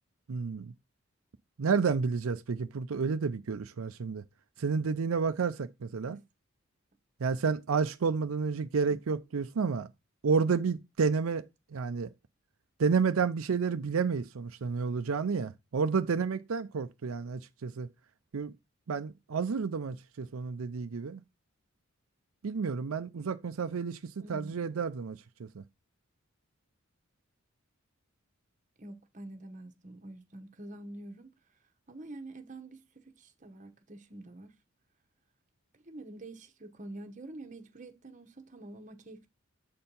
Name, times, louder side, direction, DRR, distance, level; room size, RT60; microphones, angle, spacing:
voice 1, 0.3-0.7 1.6-4.2 4.6-6.2 7.2-9.9 10.2-11.5 11.7-12.1 12.8-17.9 18.3-18.5 18.9-21.2 22.4-24.0 24.3-25.6, right 5 dB, 85° right, 0.5 m, -30 dB
voice 2, 24.2-24.8 28.8-31.3 31.9-34.5 35.7-39.3, right 2 dB, 35° right, 1.0 m, -47 dB
7.5 x 4.4 x 5.3 m
head